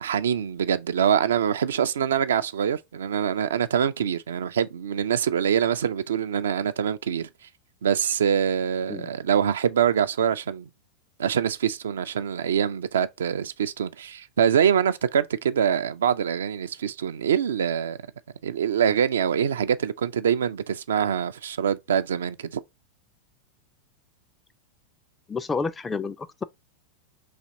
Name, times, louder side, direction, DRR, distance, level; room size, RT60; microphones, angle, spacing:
voice 1, 0.0-7.3 7.8-10.7 11.2-18.0 18.4-22.6, right 8 dB, 65° right, 0.3 m, -24 dB
voice 2, 25.3-26.4, left 4 dB, 15° left, 0.3 m, -30 dB
4.1 x 2.8 x 3.7 m
figure-of-eight pair, 90°, 0 cm